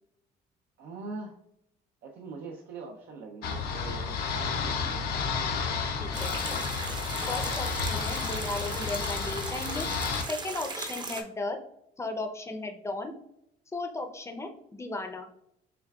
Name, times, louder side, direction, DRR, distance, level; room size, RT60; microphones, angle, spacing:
voice 1, 0.8-1.3 2.0-5.0, right 3 dB, 75° right, 1 dB, 0.6 m, -42 dB
sound 1, 3.4-10.2, left 5 dB, 65° left, 0.7 m, -31 dB
voice 2, 5.9-6.3 7.3-9.9 10.3-11.6 12.0-13.1 13.7-15.3, left 2 dB, 15° left, 5 dB, 0.6 m, -35 dB
sound 2, 6.1-11.2, right 3 dB, 25° right, 0.6 m, -38 dB
6.6 x 2.3 x 2.3 m, 0.78 s
cardioid pair, 110°, 17 cm